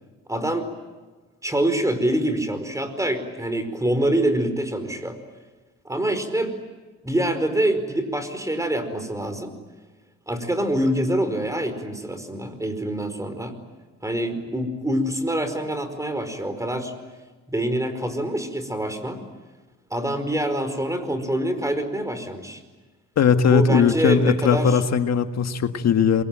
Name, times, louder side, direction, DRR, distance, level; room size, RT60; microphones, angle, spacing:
voice 1, 0.3-0.7 1.4-5.2 5.8-6.5 7.0-9.5 10.3-13.6 14.0-16.9 17.5-19.2 19.9-22.6 23.5-24.8, right 1 dB, 10° right, 9 dB, 4.9 m, -25 dB
voice 2, 23.2-26.2, left 6 dB, 60° left, 7 dB, 1.9 m, -19 dB
27.5 x 23.5 x 9.2 m, 1.3 s
cardioid pair, 90°, 30 cm